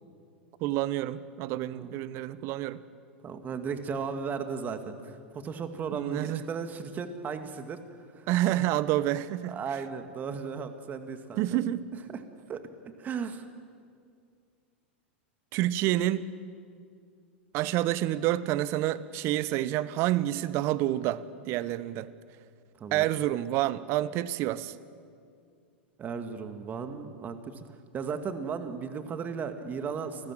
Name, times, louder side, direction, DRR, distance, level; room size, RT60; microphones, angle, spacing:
voice 1, 0.6-2.8 5.9-6.4 8.3-9.6 11.4-11.9 15.5-16.2 17.5-22.1 22.9-24.7, right 14 dB, 45° right, 17 dB, 1.1 m, -28 dB
voice 2, 3.2-7.8 8.2-8.3 9.5-11.4 12.1-12.2 12.5-12.6 13.0-13.4 22.8-23.1 26.0-27.6 27.9-30.3, right 6 dB, 30° right, 8 dB, 2.4 m, -35 dB
29.5 x 20.0 x 7.8 m, 2.3 s
figure-of-eight pair, 95°, 6 cm